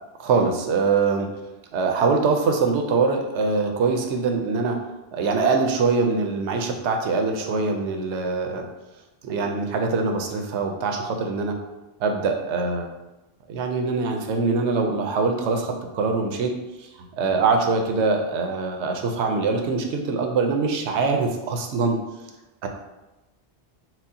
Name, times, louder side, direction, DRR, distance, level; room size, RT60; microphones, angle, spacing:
voice 1, 0.2-1.3 1.7-4.8 5.1-8.7 9.2-11.6 12.0-12.9 13.5-16.5 16.8-16.9 17.2-22.0 22.6-22.7, right 4 dB, 85° right, 3 dB, 0.9 m, -23 dB
6.0 x 2.0 x 2.7 m, 1.0 s
omnidirectional pair, 1.2 m